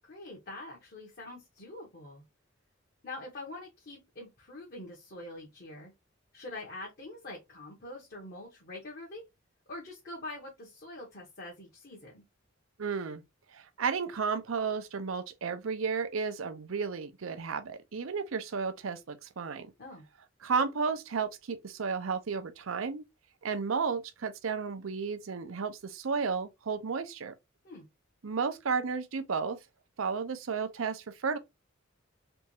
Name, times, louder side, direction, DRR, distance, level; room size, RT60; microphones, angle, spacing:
voice 1, 0.0-2.2 3.0-5.9 6.3-9.2 9.7-12.2 19.8-20.0 27.6-27.8, left 2 dB, 50° left, 1.2 m, -44 dB
voice 2, 12.8-13.2 13.5-19.7 20.4-23.0 23.4-27.3 28.2-29.6 30.0-31.4, right 5 dB, 85° right, 0.6 m, -33 dB
3.4 x 3.1 x 3.0 m
head